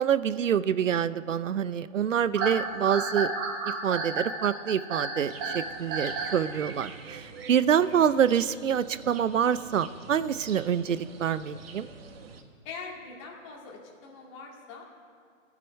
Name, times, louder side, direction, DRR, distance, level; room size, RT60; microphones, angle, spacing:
voice 1, 0.0-3.3 3.8-11.9, right 8 dB, 70° right, 16 dB, 0.7 m, -26 dB
sound 1, 2.3-6.4, right 3 dB, 15° right, 1.2 m, -31 dB
sound 2, 5.2-12.4, right 5 dB, 45° right, 1.5 m, -46 dB
voice 2, 12.6-14.9, left 4 dB, 20° left, -1 dB, 2.2 m, -43 dB
15.0 x 7.6 x 9.6 m, 2.2 s
hypercardioid pair, 155°, 40 cm